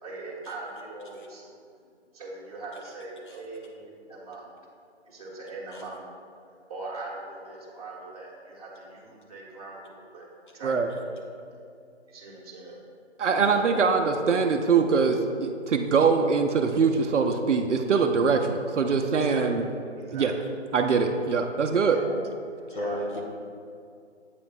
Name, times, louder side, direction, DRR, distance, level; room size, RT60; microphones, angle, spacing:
voice 1, 0.0-1.5 2.1-4.5 5.0-5.9 6.7-10.3 10.5-10.7 11.0-11.2 12.1-12.8 13.6-13.9 19.1-19.5 19.8-20.3 21.9-22.1 22.5-23.2, right 2 dB, 35° right, -5 dB, 1.5 m, -40 dB
voice 2, 13.2-19.6 20.1-20.3 20.7-22.0, right 5 dB, 80° right, 4 dB, 0.6 m, -23 dB
voice 3, 22.7-23.2, left 1 dB, 45° left, -2 dB, 1.2 m, -34 dB
8.2 x 5.1 x 2.5 m, 2.4 s
figure-of-eight pair, 155°, 35 cm